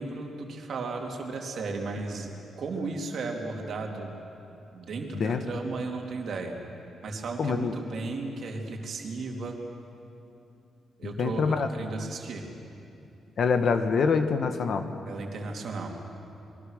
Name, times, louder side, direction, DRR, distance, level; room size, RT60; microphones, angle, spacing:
voice 1, 0.0-2.3 2.6-4.2 4.7-6.6 7.0-9.6 11.0-12.4 15.1-15.9, right 3 dB, 45° right, 2 dB, 2.7 m, -35 dB
voice 2, 7.4-7.7 11.0-11.7 13.4-14.9, left 5 dB, 45° left, 9 dB, 1.2 m, -25 dB
26.5 x 22.5 x 6.5 m, 2.7 s
wide cardioid pair, 175°, 0 cm